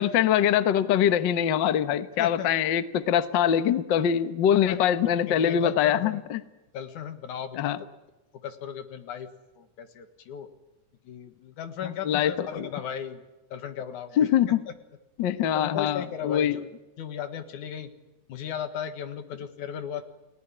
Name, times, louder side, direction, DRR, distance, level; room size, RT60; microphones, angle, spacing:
voice 1, 0.0-6.4 7.5-7.8 12.0-12.7 14.2-14.6 15.2-16.6, left 9 dB, 55° left, 12 dB, 1.3 m, -23 dB
voice 2, 2.2-2.5 4.7-4.9 5.2-6.2 6.7-7.8 8.4-9.3 9.6-10.5 11.0-13.2 13.5-14.3 15.5-16.7 17.0-17.9 18.3-20.0, left 8 dB, 90° left, 9 dB, 3.2 m, -36 dB
29.5 x 18.5 x 9.9 m, 1.0 s
omnidirectional pair, 3.4 m